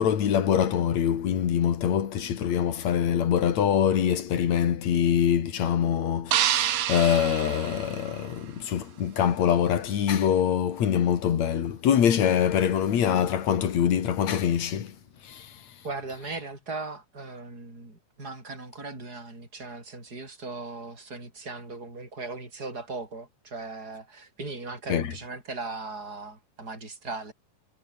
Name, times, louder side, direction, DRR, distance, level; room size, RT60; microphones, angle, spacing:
voice 1, 0.0-15.0 15.2-15.5 24.9-25.1, left 9 dB, 55° left, 3.0 m, -24 dB
sound 1, 6.3-8.6, right 11 dB, 75° right, 3.2 m, -28 dB
voice 2, 15.8-27.3, right 3 dB, 25° right, 8.0 m, -38 dB
omnidirectional pair, 4.0 m